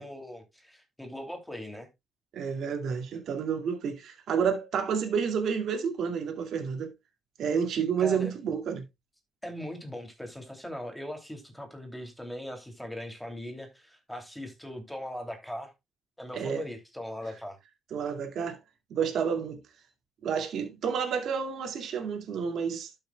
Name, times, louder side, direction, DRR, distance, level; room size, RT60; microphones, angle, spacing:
voice 1, 0.0-1.9 8.0-8.3 9.4-15.7 16.2-17.6, left 1 dB, 5° left, 2.9 m, -40 dB
voice 2, 2.3-6.9 7.4-8.8 16.4-16.6 17.9-18.6 18.9-19.6 20.2-22.9, right 6 dB, 70° right, 2.3 m, -30 dB
12.0 x 6.5 x 2.3 m
cardioid pair, 90°, 0 cm